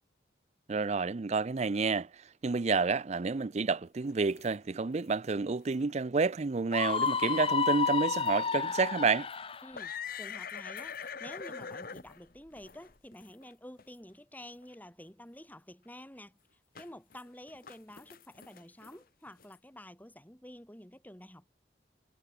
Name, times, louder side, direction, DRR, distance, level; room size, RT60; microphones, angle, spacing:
voice 1, 0.7-2.1 2.4-9.3, right 4 dB, 40° right, 0.5 m, -29 dB
sound 1, 4.0-4.5 4.9-5.1 5.7-5.8 6.2-6.3 6.9-7.2 8.1-8.3 8.8-8.9 9.3-13.5 13.8-13.9 14.6-14.7 16.8-17.2 17.5-19.6, left 6 dB, 50° left, 1.4 m, -44 dB
Screaming, 6.7-9.7, left 5 dB, 30° left, 0.8 m, -30 dB
voice 2, 9.6-9.9 10.2-21.5, left 1 dB, 10° left, 3.5 m, -50 dB
head